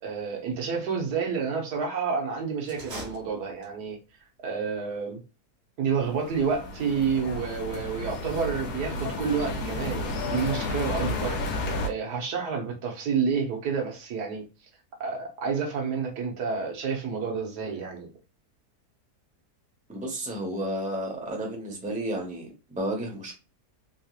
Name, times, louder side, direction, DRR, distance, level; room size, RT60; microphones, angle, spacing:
voice 1, 0.0-4.0 4.4-5.2 5.8-11.5 11.8-14.4 15.0-18.1, right 5 dB, 90° right, 1.5 m, -29 dB
sound 1, 2.6-4.0, right 1 dB, 50° right, 1.2 m, -41 dB
sound 2, 5.9-11.9, left 2 dB, 85° left, 1.2 m, -32 dB
voice 2, 19.9-23.3, right 1 dB, 10° right, 0.6 m, -32 dB
3.5 x 2.8 x 2.4 m
omnidirectional pair, 1.7 m